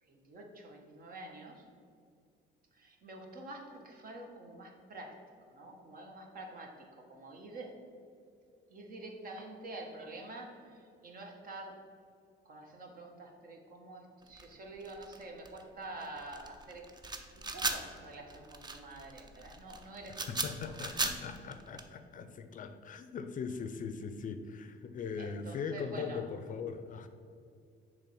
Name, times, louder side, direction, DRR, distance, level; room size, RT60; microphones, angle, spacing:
voice 1, 0.0-1.7 2.7-5.2 5.5-7.8 8.5-11.8 12.4-16.9 17.5-20.3 20.6-20.9 25.2-26.2, right 2 dB, 50° right, 2 dB, 1.3 m, -47 dB
sound 1, 14.2-21.8, right 3 dB, 20° right, 0.6 m, -38 dB
voice 2, 20.3-27.1, left 5 dB, 45° left, 9 dB, 0.5 m, -40 dB
6.9 x 3.4 x 5.9 m, 2.4 s
cardioid pair, 100°, 19 cm